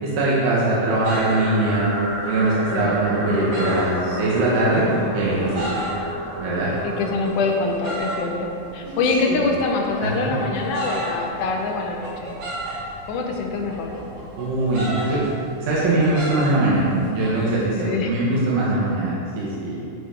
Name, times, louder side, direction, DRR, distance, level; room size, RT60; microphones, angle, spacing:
voice 1, 0.0-1.9 2.3-4.9 5.1-5.7 6.4-6.7 9.3-9.4 10.0-10.3 14.4-15.2 15.6-19.7, right 2 dB, 90° right, -8 dB, 2.9 m, -21 dB
sound 1, 0.9-17.3, right 1 dB, 65° right, 3.6 m, -34 dB
sound 2, 1.1-7.1, right 1 dB, 50° right, 1.3 m, -30 dB
voice 2, 6.8-12.3 13.1-13.9 17.8-18.1, left 3 dB, 75° left, 1 dB, 2.2 m, -24 dB
12.0 x 5.1 x 3.4 m, 2.6 s
omnidirectional pair, 3.7 m